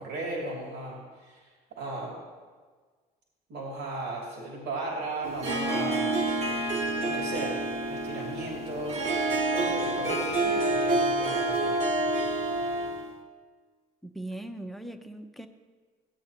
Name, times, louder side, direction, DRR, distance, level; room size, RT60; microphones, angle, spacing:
voice 1, 0.0-2.1 3.5-6.2 6.9-7.6 7.9-11.8, right 2 dB, 75° right, -3 dB, 2.7 m, -36 dB
Harp, 5.2-13.1, right 2 dB, 40° right, 1.3 m, -28 dB
voice 2, 14.0-15.5, right 1 dB, ahead, 5 dB, 0.7 m, -39 dB
16.5 x 8.5 x 2.9 m, 1.5 s
cardioid pair, 110°, 17 cm